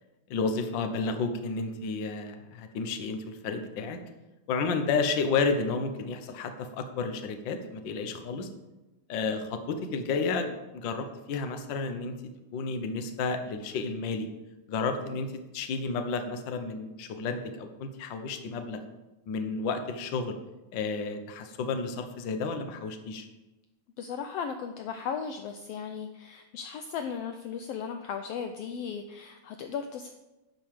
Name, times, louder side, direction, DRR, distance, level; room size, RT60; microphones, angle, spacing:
voice 1, 0.3-4.0 4.5-8.5 9.1-12.1 12.5-14.3 14.7-18.8 19.3-20.4 20.7-23.3, left 4 dB, 60° left, 7 dB, 1.2 m, -31 dB
voice 2, 24.0-30.1, left 6 dB, 80° left, 7 dB, 1.4 m, -36 dB
11.5 x 5.4 x 7.6 m, 1.0 s
omnidirectional pair, 3.4 m